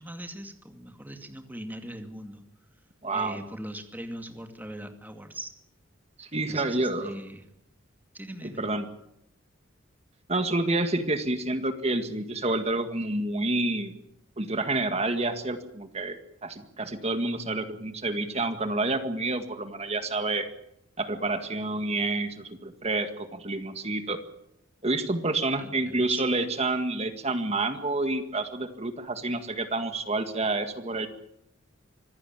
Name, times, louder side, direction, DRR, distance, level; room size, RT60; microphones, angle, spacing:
voice 1, 0.0-2.4 3.1-5.5 6.3-7.4 8.1-8.6 25.6-26.3, right 1 dB, 10° right, 5 dB, 2.4 m, -41 dB
voice 2, 3.0-3.4 6.2-7.2 8.6-8.9 10.3-13.9 14.4-16.2 16.4-20.5 21.0-24.2 24.8-31.1, right 2 dB, 30° right, 8 dB, 1.9 m, -28 dB
25.5 x 16.0 x 9.0 m, 0.78 s
head